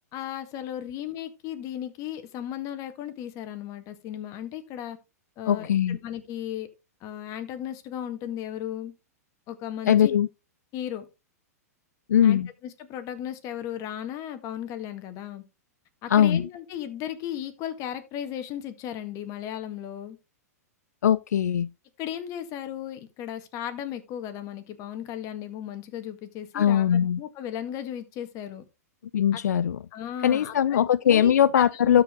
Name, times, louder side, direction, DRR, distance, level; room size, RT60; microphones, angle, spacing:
voice 1, 0.1-5.0 5.4-6.7 7.0-8.9 9.5-10.2 10.7-11.1 12.2-15.4 16.0-20.2 22.0-28.6 29.3-29.4 29.9-32.0, left 10 dB, 40° left, 1.7 m, -36 dB
voice 2, 5.5-6.0 9.9-10.3 12.1-12.5 16.1-16.5 21.0-21.7 26.5-27.2 29.1-29.8 30.2-32.0, left 9 dB, 85° left, 0.4 m, -21 dB
12.5 x 4.8 x 3.7 m
hypercardioid pair, 120°, 9 cm